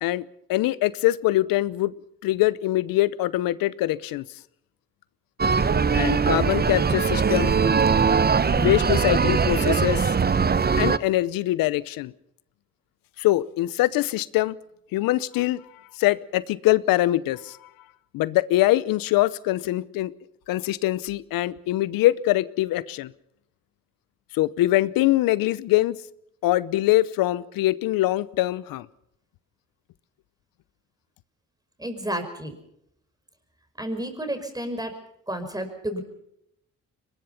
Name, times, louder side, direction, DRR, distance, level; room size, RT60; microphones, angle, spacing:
voice 1, 0.0-1.9 2.2-4.2 5.9-7.5 8.5-10.1 10.8-12.1 13.2-14.6 14.9-15.6 16.0-17.7 18.1-20.1 20.5-23.1 24.3-26.0 26.4-28.9, left 16 dB, 85° left, 19 dB, 0.8 m, -23 dB
sound 1, 5.4-11.0, right 5 dB, 30° right, 0.9 m, -21 dB
voice 2, 31.8-32.5 33.8-35.0 35.3-36.0, right 1 dB, 10° right, 7 dB, 5.6 m, -31 dB
23.0 x 21.0 x 5.8 m, 0.77 s
supercardioid pair, 65°, 33 cm